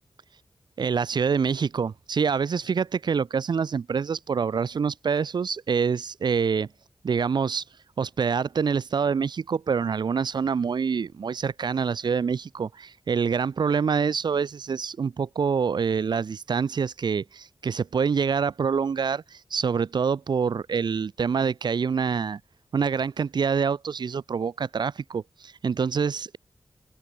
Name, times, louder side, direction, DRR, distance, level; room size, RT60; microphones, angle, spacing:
voice 1, 0.8-6.7 7.0-7.6 8.0-22.4 22.7-26.4, right 6 dB, 80° right, 0.9 m, -26 dB
open air
wide cardioid pair, 125°, 7 cm